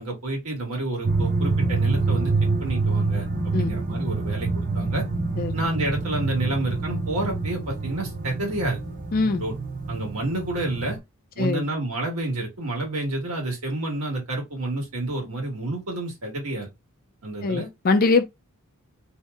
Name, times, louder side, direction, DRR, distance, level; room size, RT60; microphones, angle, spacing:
voice 1, 0.0-2.3 2.6-5.0 5.5-8.8 9.4-9.5 9.9-11.0 11.3-16.7 17.2-17.7, right 2 dB, 80° right, 1.3 m, -29 dB
sound 1, 1.0-11.0, right 3 dB, 35° right, 0.6 m, -26 dB
voice 2, 9.1-9.4 11.4-11.6 17.4-18.3, left 3 dB, 40° left, 0.4 m, -22 dB
2.7 x 2.1 x 3.4 m
head